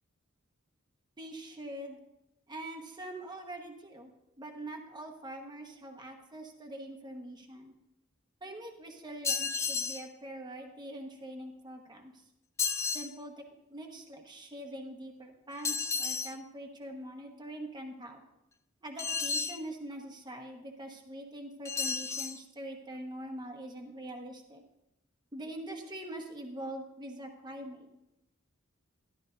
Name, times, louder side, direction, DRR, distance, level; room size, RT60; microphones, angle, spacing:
voice 1, 1.2-2.0 2.5-4.1 4.4-7.7 8.4-12.1 12.9-13.4 13.7-18.2 18.8-24.6 25.3-27.9, right 1 dB, 20° right, 2 dB, 1.3 m, -43 dB
sound 1, 9.2-10.1 12.6-13.1 15.6-16.4 19.0-19.6 21.7-22.4, left 5 dB, 15° left, 0.3 m, -32 dB
12.5 x 12.5 x 2.6 m, 0.88 s
head